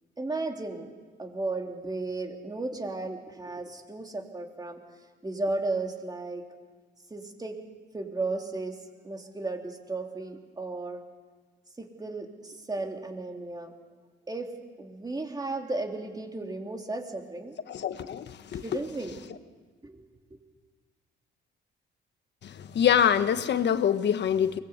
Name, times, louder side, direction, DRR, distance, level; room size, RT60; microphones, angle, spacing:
voice 1, 0.2-0.9 1.2-4.8 5.2-6.4 7.1-7.6 7.9-8.8 9.0-11.0 11.8-13.7 14.3-14.5 14.8-17.5 18.6-19.2 19.8-20.0 20.3-20.4, right 2 dB, 20° right, 3.3 m, -34 dB
voice 2, 17.7-18.6 22.4-24.6, left 8 dB, 60° left, 1.3 m, -25 dB
23.5 x 21.0 x 8.2 m
cardioid pair, 90°, 20 cm